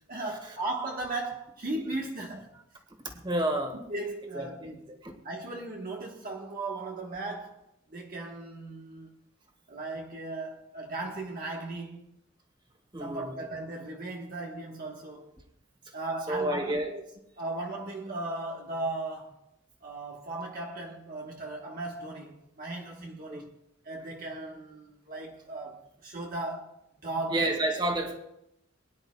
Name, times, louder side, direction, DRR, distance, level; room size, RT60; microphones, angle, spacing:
voice 1, 0.1-2.5 3.7-4.9 5.2-7.6 7.9-9.1 9.7-12.1 13.0-15.4 15.9-17.0 17.4-19.4 19.8-23.5 23.8-26.8 27.0-27.5, right 2 dB, 45° right, 1.4 m, -37 dB
voice 2, 3.0-3.7 4.3-4.5 12.9-13.3 16.3-16.9 23.3-23.4 27.3-28.1, right 1 dB, 25° right, 2.0 m, -29 dB
22.0 x 10.5 x 2.3 m
head